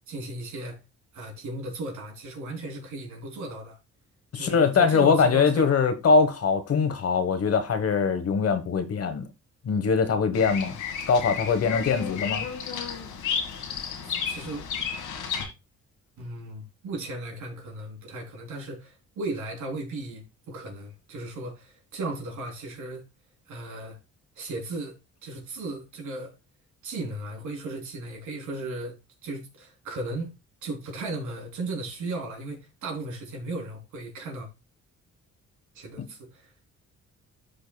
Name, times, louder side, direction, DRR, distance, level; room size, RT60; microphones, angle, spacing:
voice 1, 0.1-0.8 1.1-3.8 4.3-5.7 14.0-14.6 16.2-23.1 23.5-24.0 24.3-26.4 26.8-29.0 29.2-30.3 30.6-34.5 35.7-36.5, right 2 dB, 75° right, 3.4 m, -36 dB
voice 2, 4.3-9.2 9.6-10.8 11.1-12.5, left 5 dB, 50° left, 1.3 m, -22 dB
Bird vocalization bird call bird song, 10.3-15.4, left 7 dB, 85° left, 1.8 m, -32 dB
13.0 x 5.2 x 2.3 m
cardioid pair, 90°, 30 cm